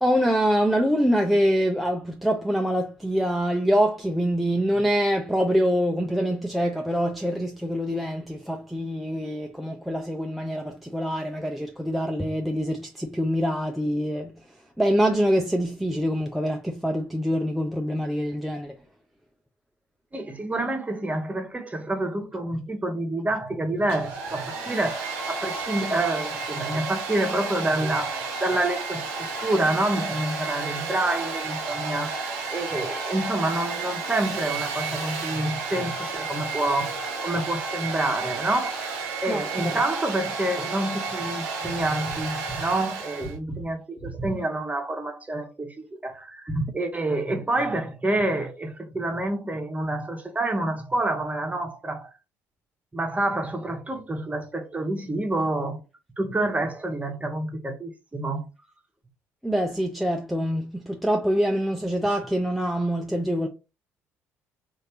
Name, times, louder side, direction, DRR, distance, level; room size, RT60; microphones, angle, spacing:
voice 1, 0.0-14.4 14.8-18.8 23.3-23.4 39.3-39.8 59.4-63.5, equal, ahead, 0.5 m, -25 dB
voice 2, 20.1-52.1 52.9-55.8 56.2-58.5, right 1 dB, 20° right, 1.0 m, -28 dB
Domestic sounds home sounds, 23.8-43.4, right 4 dB, 80° right, 0.8 m, -32 dB
3.2 x 2.6 x 2.9 m
hypercardioid pair, 55°, 7 cm